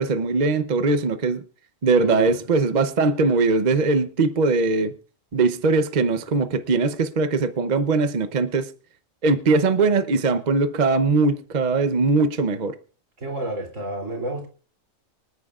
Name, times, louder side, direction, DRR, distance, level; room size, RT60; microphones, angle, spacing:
voice 1, 0.0-1.4 1.8-4.9 5.3-8.7 9.2-12.7, right 3 dB, 40° right, 0.7 m, -21 dB
voice 2, 2.0-2.3 13.2-14.5, right 2 dB, 75° right, 3.5 m, -30 dB
25.0 x 9.5 x 2.4 m
omnidirectional pair, 1.3 m